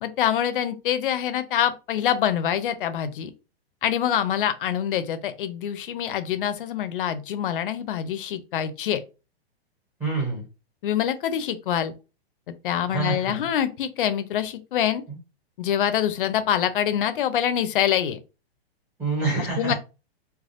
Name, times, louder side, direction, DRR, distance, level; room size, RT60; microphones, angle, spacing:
voice 1, 0.0-3.3 3.8-9.0 10.8-11.9 12.5-15.0 15.6-18.2 19.6-19.7, left 10 dB, 55° left, 0.5 m, -25 dB
voice 2, 10.0-10.5 12.9-13.4 15.1-15.2 19.0-19.7, right 3 dB, 5° right, 0.6 m, -27 dB
3.3 x 2.2 x 2.5 m
hypercardioid pair, 165°, 32 cm